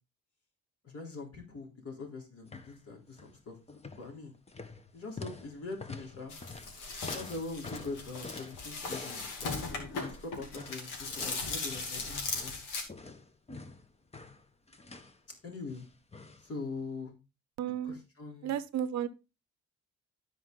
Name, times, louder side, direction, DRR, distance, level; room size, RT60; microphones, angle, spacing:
voice 1, 0.8-4.3 4.9-6.3 7.1-9.2 9.7-12.5 15.4-15.9 16.4-17.1 17.8-18.6, left 3 dB, 50° left, 3.8 m, -43 dB
sound 1, 2.4-2.8 3.1-3.4 3.7-12.6 12.9-15.2 15.7-16.5 16.8-16.9, left 3 dB, 20° left, 1.1 m, -47 dB
sound 2, 6.3-12.8, left 4 dB, 90° left, 2.4 m, -38 dB
voice 2, 17.6-18.0 18.4-19.1, right 10 dB, 65° right, 0.8 m, -33 dB
12.5 x 4.9 x 3.9 m
cardioid pair, 90°, 30 cm